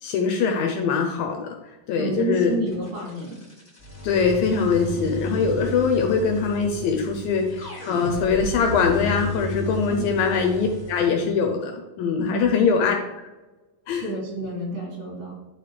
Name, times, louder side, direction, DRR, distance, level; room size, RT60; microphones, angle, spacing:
voice 1, 0.0-2.5 4.0-12.9 13.9-14.1, left 5 dB, 75° left, 3 dB, 2.3 m, -22 dB
voice 2, 1.9-3.4 9.9-10.1 12.2-12.5 13.9-15.3, right 1 dB, 60° right, -4 dB, 4.7 m, -29 dB
sound 1, 2.4-11.0, equal, 35° left, 1.5 m, -33 dB
11.5 x 5.0 x 3.3 m, 1.1 s
omnidirectional pair, 4.5 m